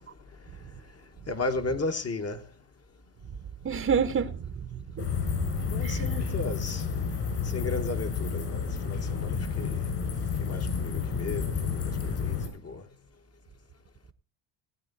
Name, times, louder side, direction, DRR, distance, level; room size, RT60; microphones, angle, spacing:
voice 1, 1.3-2.5 5.7-6.9 7.4-9.8 10.4-12.8, left 3 dB, 30° left, 1.5 m, -35 dB
voice 2, 3.6-4.4 4.7-5.1 5.8-6.2, right 6 dB, 25° right, 1.1 m, -28 dB
sound 1, 5.0-12.5, left 6 dB, 55° left, 5.6 m, -30 dB
18.5 x 8.8 x 4.1 m
supercardioid pair, 85°, 49 cm